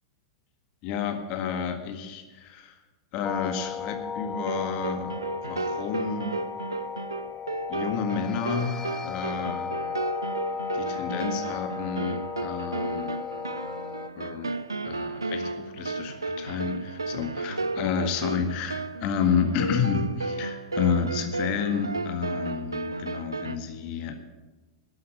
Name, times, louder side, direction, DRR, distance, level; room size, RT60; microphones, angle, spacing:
voice 1, 0.8-2.7 3.1-5.1 5.4-6.3 7.7-9.8 10.7-13.2 14.2-14.5 14.8-24.2, left 6 dB, 40° left, 6 dB, 1.7 m, -30 dB
sound 1, 3.2-14.1, left 6 dB, 20° left, 0.7 m, -35 dB
sound 2, 4.4-23.6, right 3 dB, 80° right, 0.5 m, -33 dB
13.0 x 8.7 x 9.0 m, 1.2 s
figure-of-eight pair, 90°, 2 cm